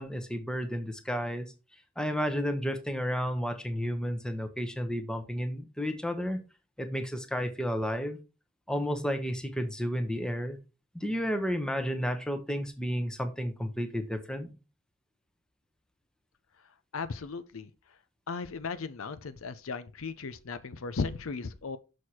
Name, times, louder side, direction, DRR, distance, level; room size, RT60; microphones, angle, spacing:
voice 1, 0.0-1.5 2.0-6.4 6.8-8.2 8.7-10.6 10.9-14.5, equal, 5° left, 0.9 m, -32 dB
voice 2, 16.9-17.7 18.3-21.8, left 4 dB, 70° left, 0.6 m, -36 dB
6.5 x 6.3 x 4.3 m
head